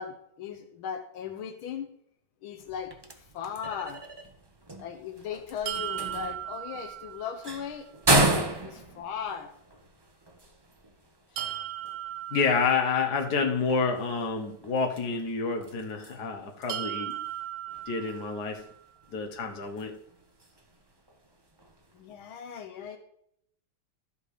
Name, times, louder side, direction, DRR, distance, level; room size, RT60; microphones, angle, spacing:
voice 1, 0.0-1.9 2.4-4.0 4.8-9.5 21.9-23.0, left 7 dB, 80° left, 7 dB, 1.7 m, -38 dB
sound 1, 2.6-22.1, right 2 dB, 30° right, 0.4 m, -34 dB
sound 2, 5.7-7.6 11.4-13.4 16.7-18.7, right 12 dB, 90° right, 1.5 m, -37 dB
voice 2, 12.3-17.2 17.9-18.6 19.1-19.9, left 5 dB, 55° left, 5 dB, 1.8 m, -28 dB
13.0 x 5.2 x 4.9 m, 0.71 s
omnidirectional pair, 2.2 m